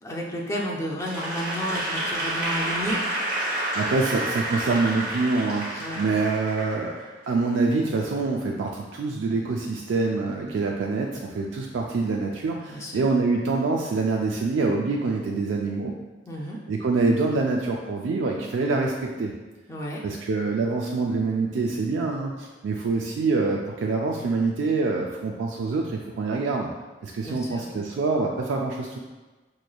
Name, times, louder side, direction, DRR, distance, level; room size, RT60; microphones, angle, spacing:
voice 1, 0.0-3.0 5.8-6.0 12.7-13.0 16.3-16.6 19.7-20.0 27.2-27.7, equal, 15° left, -3 dB, 0.4 m, -31 dB
Applause / Crowd, 1.0-7.3, right 1 dB, 50° right, 1.0 m, -29 dB
voice 2, 3.7-6.9 7.3-16.0 16.7-19.3 20.0-26.7 27.0-29.0, right 3 dB, 80° right, 0 dB, 0.4 m, -25 dB
5.1 x 3.1 x 2.3 m, 1.2 s
head